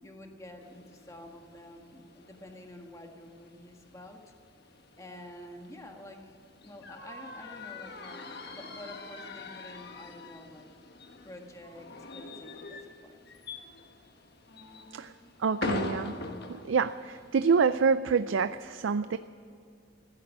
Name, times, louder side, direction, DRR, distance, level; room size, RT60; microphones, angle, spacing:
voice 1, 0.0-4.2 5.0-10.7 11.2-13.2, left 1 dB, 15° left, 2 dB, 1.7 m, -48 dB
sound 1, 0.6-17.7, left 3 dB, 55° left, 1.3 m, -43 dB
voice 2, 15.4-16.2 16.5-19.2, right 5 dB, 70° right, 13 dB, 0.4 m, -27 dB
16.0 x 10.5 x 8.6 m, 2.5 s
head